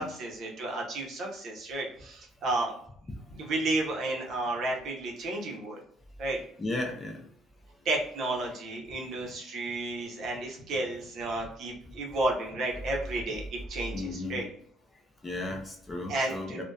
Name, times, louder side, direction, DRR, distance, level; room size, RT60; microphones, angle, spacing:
voice 1, 0.0-2.8 3.3-5.8 6.2-6.4 7.8-14.4 16.1-16.6, right 2 dB, 50° right, -1 dB, 0.7 m, -32 dB
voice 2, 6.6-7.2 13.9-14.4 15.2-16.6, left 2 dB, 15° left, 2 dB, 0.4 m, -34 dB
2.6 x 2.1 x 2.3 m, 0.65 s
cardioid pair, 140°, 0 cm